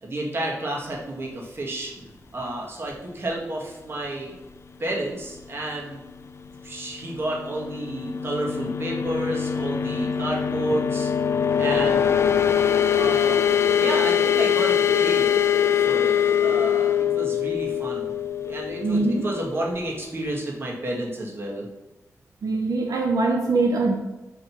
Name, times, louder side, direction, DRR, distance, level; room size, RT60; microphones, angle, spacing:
voice 1, 0.0-4.3 4.8-6.0 6.6-11.1 11.6-12.1 12.9-13.4 13.7-15.3 15.8-16.1 16.4-18.1 18.4-21.6, right 1 dB, 40° right, -3 dB, 1.6 m, -31 dB
sound 1, 7.4-19.9, left 8 dB, 50° left, 0.4 m, -23 dB
voice 2, 18.8-19.3 22.4-24.0, right 3 dB, 80° right, 1 dB, 0.7 m, -22 dB
4.9 x 4.5 x 5.6 m, 1.1 s
wide cardioid pair, 150°, 6 cm